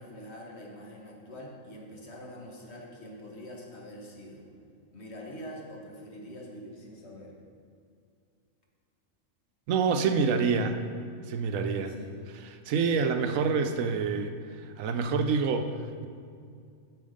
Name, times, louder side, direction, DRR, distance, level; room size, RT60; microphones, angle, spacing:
voice 1, 0.0-4.5 4.9-7.4 11.5-12.2, equal, 55° left, -1 dB, 1.7 m, -45 dB
voice 2, 9.7-10.8 11.3-11.9 12.7-14.3 14.8-15.7, right 5 dB, 85° right, 7 dB, 1.0 m, -26 dB
9.3 x 6.3 x 5.1 m, 2.3 s
omnidirectional pair, 1.3 m